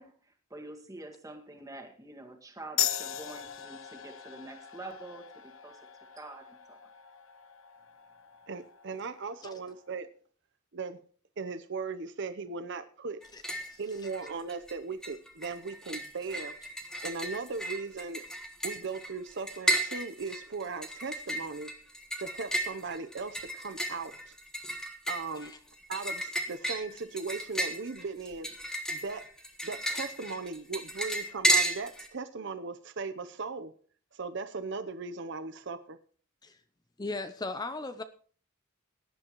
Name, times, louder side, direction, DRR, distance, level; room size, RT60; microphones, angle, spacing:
voice 1, 0.0-5.8 6.1-6.8, right 2 dB, 15° right, 3 dB, 1.9 m, -46 dB
sound 1, 2.8-9.9, left 11 dB, 65° left, 0.8 m, -39 dB
voice 2, 8.5-10.1 10.7-11.0 11.4-13.2 13.8-16.5 17.0-18.2 18.6-21.7 22.2-24.3 25.1-25.5 25.9-28.5 28.9-29.2 29.6-33.7 34.1-36.0, right 4 dB, 55° right, 11 dB, 0.7 m, -38 dB
sound 2, 13.2-13.7 14.0-14.7 15.0-32.1, right 1 dB, 5° left, 1.4 m, -33 dB
voice 3, 13.3-13.8 25.4-25.6 36.4-36.6 37.0-38.0, left 3 dB, 20° left, 10 dB, 0.6 m, -38 dB
18.0 x 10.5 x 3.0 m, 0.43 s
head